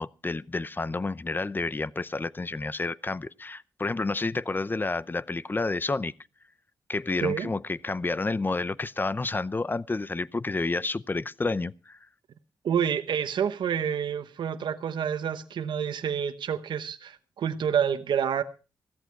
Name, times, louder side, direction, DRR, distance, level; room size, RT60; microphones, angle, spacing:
voice 1, 0.0-6.1 6.9-12.0, left 3 dB, 25° left, 0.7 m, -30 dB
voice 2, 12.6-18.4, right 8 dB, 75° right, 1.0 m, -28 dB
15.5 x 14.0 x 4.6 m
cardioid pair, 70°, 8 cm